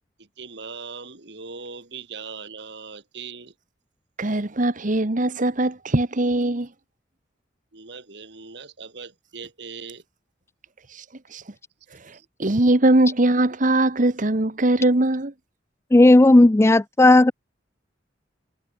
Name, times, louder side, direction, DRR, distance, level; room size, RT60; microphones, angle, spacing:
voice 1, 0.2-3.5 7.7-10.0 12.1-12.3, right 5 dB, 65° right, 2.9 m, -39 dB
voice 2, 4.2-6.7 10.9-11.0 11.3-11.4 11.9-15.3, right 2 dB, 45° right, 1.3 m, -21 dB
voice 3, 15.9-17.3, left 2 dB, 15° left, 0.4 m, -13 dB
head